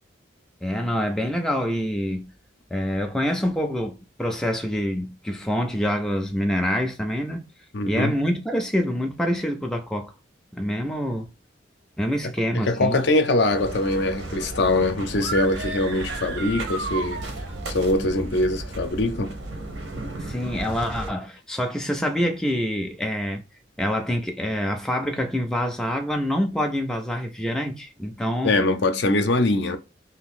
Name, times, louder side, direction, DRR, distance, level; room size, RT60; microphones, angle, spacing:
voice 1, 0.6-2.3 2.7-7.5 7.9-10.1 10.5-11.3 12.0-13.0 20.2-23.4 23.8-28.6, equal, 5° left, 0.3 m, -26 dB
voice 2, 7.7-8.2 12.2-17.2 17.7-19.4 28.4-29.8, left 2 dB, 65° left, 0.5 m, -23 dB
sound 1, 13.5-21.1, right 1 dB, 85° right, 0.9 m, -34 dB
sound 2, 15.1-17.7, right 4 dB, 60° right, 0.6 m, -34 dB
2.8 x 2.5 x 3.6 m
head